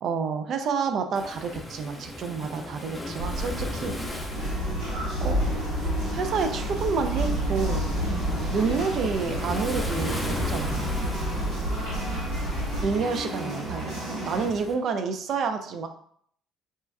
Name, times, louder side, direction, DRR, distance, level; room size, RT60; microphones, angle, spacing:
voice 1, 0.0-4.3 5.2-5.5 6.1-7.9 8.5-11.0 12.8-15.9, right 5 dB, 55° right, 6 dB, 0.3 m, -29 dB
Waves surf, 1.1-14.7, left 1 dB, 10° left, 0.7 m, -38 dB
voice 2, 2.4-3.2 3.8-3.9 8.0-8.3 11.0-11.4, left 4 dB, 30° left, 8 dB, 0.3 m, -41 dB
sound 1, 3.2-12.8, equal, 90° right, 1.0 m, -30 dB
sound 2, 4.3-14.5, right 1 dB, 75° right, 1.3 m, -34 dB
4.2 x 2.2 x 2.2 m, 0.63 s
hypercardioid pair, 50°, 0 cm